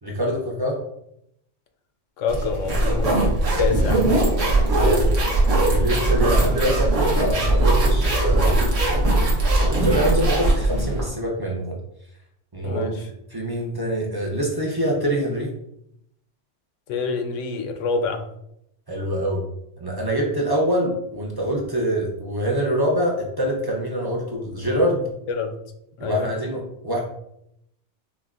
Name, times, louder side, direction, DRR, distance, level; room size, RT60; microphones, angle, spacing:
voice 1, 0.0-0.8 4.7-5.1 5.6-8.6 9.6-11.8 12.5-15.5 18.9-19.4 19.8-25.0 26.0-27.0, equal, 35° right, -2 dB, 0.4 m, -25 dB
voice 2, 2.2-3.2 3.6-4.0 12.6-13.0 16.9-18.2 25.3-25.5 26.0-26.3, left 4 dB, 85° left, 5 dB, 0.9 m, -26 dB
sound 1, 2.3-11.1, right 2 dB, 75° right, 1.3 m, -20 dB
5.8 x 2.1 x 2.4 m, 0.77 s
omnidirectional pair, 1.3 m